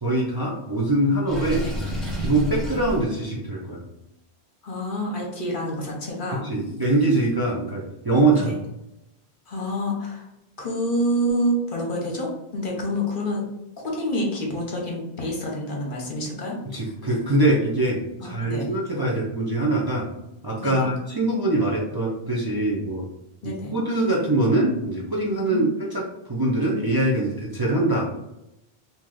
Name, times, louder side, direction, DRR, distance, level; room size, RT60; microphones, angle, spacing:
voice 1, 0.0-1.7 2.2-3.8 6.3-8.5 16.7-20.1 20.4-23.0 23.4-26.0 26.3-28.1, right 2 dB, 25° right, -5 dB, 0.6 m, -23 dB
Water / Sink (filling or washing), 1.3-3.0, equal, ahead, 0.9 m, -29 dB
voice 2, 4.6-6.5 8.3-8.6 9.5-10.3 10.6-13.4 13.8-16.9 18.2-18.7 20.6-20.9 23.4-23.7 25.3-25.6, equal, 55° left, -2 dB, 1.1 m, -28 dB
3.1 x 2.7 x 3.8 m, 0.87 s
omnidirectional pair, 1.1 m